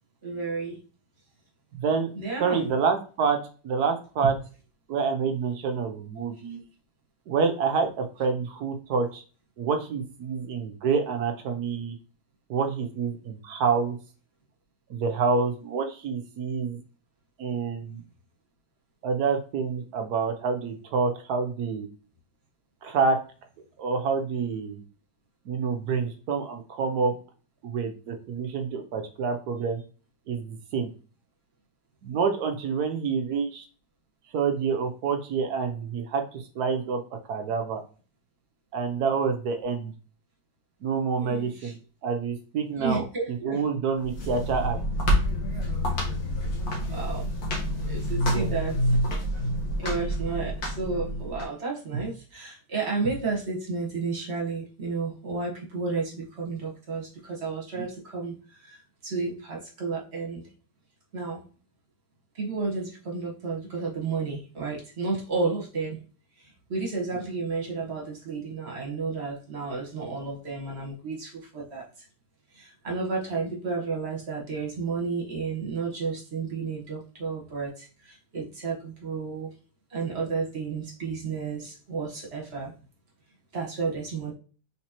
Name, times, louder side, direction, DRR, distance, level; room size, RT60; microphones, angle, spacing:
voice 1, 0.2-0.8 2.1-2.7 41.2-41.7 42.8-43.6 46.9-47.4 47.7-49.0 49.8-60.5 61.1-61.4 62.3-66.0 66.4-72.0 72.5-79.5 79.9-82.7 83.5-84.3, right 4 dB, 40° right, -2 dB, 1.5 m, -32 dB
voice 2, 1.7-2.1 2.4-3.4 3.6-4.3 4.9-6.7 7.3-9.2 9.6-12.0 12.5-14.0 14.9-16.8 17.4-18.0 19.0-21.9 22.8-23.2 23.8-24.8 25.4-27.1 27.6-29.8 30.3-30.9 32.0-33.7 34.3-37.0 37.3-37.8 38.7-39.9 40.8-41.8 42.0-44.8 48.2-48.5, right 5 dB, 65° right, 6 dB, 1.2 m, -27 dB
sound 1, 44.0-51.5, equal, 55° left, 1.7 m, -27 dB
4.3 x 4.0 x 2.9 m, 0.37 s
omnidirectional pair, 2.0 m